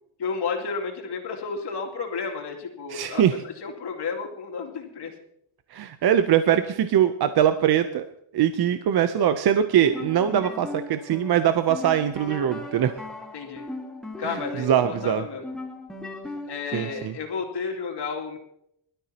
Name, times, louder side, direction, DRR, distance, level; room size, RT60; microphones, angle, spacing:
voice 1, 0.2-5.1 13.3-13.6 14.2-15.4 16.5-18.4, left 5 dB, 55° left, 1 dB, 2.7 m, -32 dB
voice 2, 2.9-3.3 5.7-8.0 8.3-12.9 14.2-15.2 16.7-17.1, right 10 dB, 50° right, 10 dB, 0.7 m, -22 dB
sound 1, 9.7-17.2, left 2 dB, ahead, 1.8 m, -38 dB
22.5 x 12.5 x 2.9 m, 0.74 s
cardioid pair, 125°, 47 cm